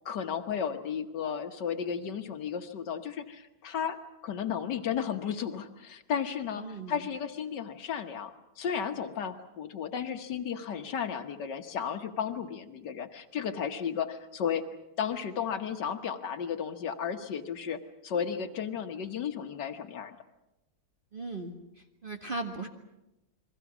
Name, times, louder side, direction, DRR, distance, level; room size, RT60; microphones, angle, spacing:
voice 1, 0.1-4.0 4.2-14.6 15.0-20.1, left 7 dB, 80° left, 6 dB, 1.8 m, -34 dB
voice 2, 6.6-7.1 21.1-21.5 22.0-22.7, right 2 dB, 30° right, 3 dB, 1.7 m, -37 dB
29.5 x 22.5 x 6.1 m, 0.93 s
omnidirectional pair, 1.9 m